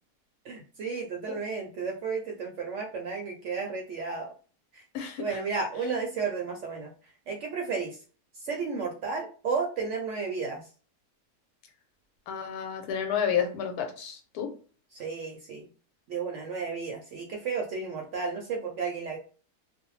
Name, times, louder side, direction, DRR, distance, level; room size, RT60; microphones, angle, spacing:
voice 1, 0.4-4.3 4.7-4.8 5.2-6.9 7.3-8.0 8.4-10.6 14.9-15.7 16.1-19.2, right 5 dB, 70° right, 1 dB, 0.7 m, -33 dB
voice 2, 12.3-14.5, left 8 dB, 80° left, 3 dB, 1.1 m, -30 dB
2.5 x 2.1 x 3.0 m, 0.39 s
omnidirectional pair, 1.6 m